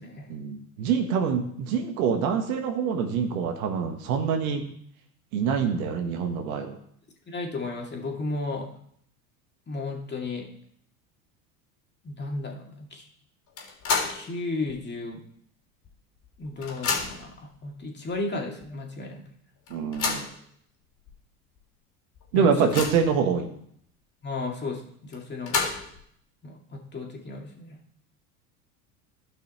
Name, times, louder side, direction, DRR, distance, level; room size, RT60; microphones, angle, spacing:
voice 1, 0.3-4.6 5.3-6.8 19.7-20.2 22.3-23.5, right 6 dB, 70° right, 5 dB, 1.5 m, -25 dB
voice 2, 7.3-8.7 9.7-10.5 12.0-13.0 14.1-15.2 16.4-19.2 22.3-22.7 24.2-25.7 26.4-27.8, left 3 dB, 25° left, 0 dB, 2.3 m, -34 dB
sound 1, 13.6-14.3 14.7-14.8 15.8-15.9 16.2-17.3 18.1-18.2 18.6-18.7 19.7-20.4 21.1-21.2 21.6-21.7 22.1-23.2 25.1-26.0, left 5 dB, 45° left, 2.8 m, -30 dB
13.0 x 5.6 x 4.4 m, 0.66 s
hypercardioid pair, 80°, 44 cm